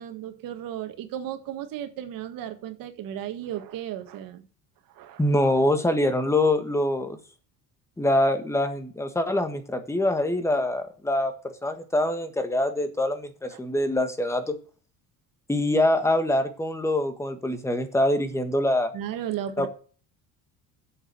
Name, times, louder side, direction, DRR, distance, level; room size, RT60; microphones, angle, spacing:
voice 1, 0.0-4.4 4.9-5.2 13.5-13.6 18.9-19.7, right 11 dB, 60° right, 7 dB, 1.8 m, -35 dB
voice 2, 5.2-7.2 8.0-14.6 15.5-18.9 19.6-19.7, left 1 dB, 5° left, 8 dB, 1.5 m, -24 dB
8.0 x 6.6 x 7.0 m, 0.39 s
cardioid pair, 145°, 37 cm